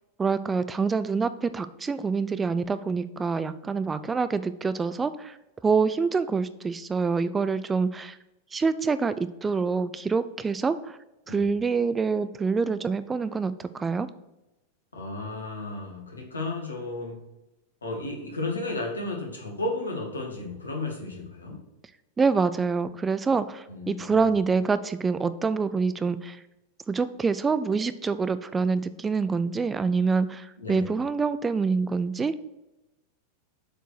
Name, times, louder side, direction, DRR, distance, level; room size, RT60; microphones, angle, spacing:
voice 1, 0.2-5.4 5.6-8.2 8.5-11.0 11.3-14.1 22.2-26.4 26.9-32.4, right 4 dB, 15° right, 13 dB, 0.4 m, -26 dB
voice 2, 14.9-17.2 17.8-21.6 23.7-24.3 30.6-30.9, left 2 dB, 75° left, 0 dB, 1.9 m, -33 dB
7.7 x 4.6 x 4.5 m, 0.95 s
figure-of-eight pair, 90°, 0 cm